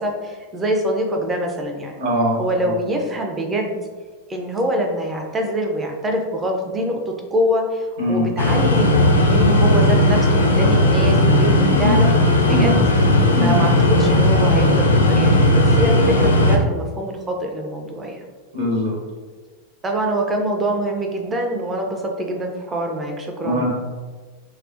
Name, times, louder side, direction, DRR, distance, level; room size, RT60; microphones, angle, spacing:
voice 1, 0.0-1.9 2.4-3.7 4.3-12.1 12.4-12.8 13.4-13.7 14.0-18.3 19.8-23.7, right 1 dB, 20° right, 2 dB, 0.5 m, -24 dB
voice 2, 2.0-2.4 8.0-8.3 11.7-12.0 12.5-12.7 13.3-13.5 18.5-18.9 23.4-23.7, left 1 dB, 50° right, -4 dB, 1.2 m, -21 dB
sound 1, 8.4-16.6, left 1 dB, 75° left, 0.4 m, -16 dB
4.2 x 2.0 x 2.4 m, 1.4 s
figure-of-eight pair, 90°, 0 cm